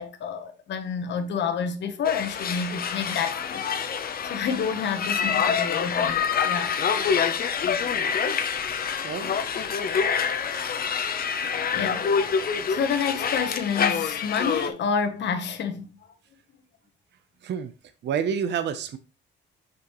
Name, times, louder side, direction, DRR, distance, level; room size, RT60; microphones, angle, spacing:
voice 1, 0.0-6.8 11.4-12.1 12.7-15.9, left 6 dB, 65° left, 1.1 m, -29 dB
sound 1, 2.0-14.7, left 6 dB, 50° left, 0.8 m, -26 dB
voice 2, 9.0-9.4 17.4-17.7 18.0-19.0, right 7 dB, 60° right, 0.7 m, -28 dB
6.0 x 5.7 x 3.1 m
cardioid pair, 90°, 20 cm